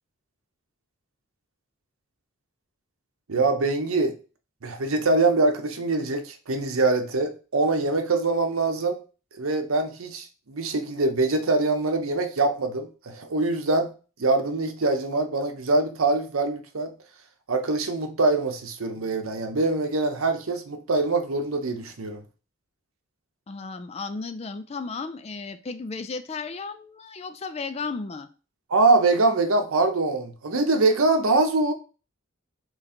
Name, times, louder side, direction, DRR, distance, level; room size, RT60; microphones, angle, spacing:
voice 1, 3.3-4.1 4.6-9.0 9.4-13.9 14.2-16.9 17.5-22.2 28.7-31.7, right 3 dB, 80° right, 0.8 m, -23 dB
voice 2, 23.5-28.3, left 4 dB, 30° left, 0.3 m, -34 dB
3.8 x 3.1 x 4.3 m
head